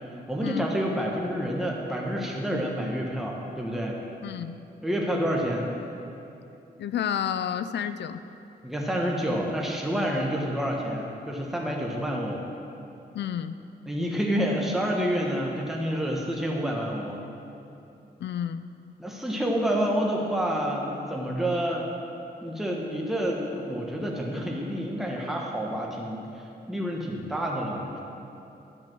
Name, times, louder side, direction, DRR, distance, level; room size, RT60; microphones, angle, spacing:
voice 1, 0.3-4.0 4.8-5.7 8.6-12.4 13.9-17.2 19.0-21.8 22.4-28.0, equal, ahead, -2 dB, 1.4 m, -28 dB
voice 2, 4.2-4.6 6.8-8.2 13.1-13.6 18.2-18.7, left 9 dB, 90° left, 11 dB, 0.5 m, -30 dB
11.0 x 10.0 x 6.1 m, 2.8 s
wide cardioid pair, 115°, 17 cm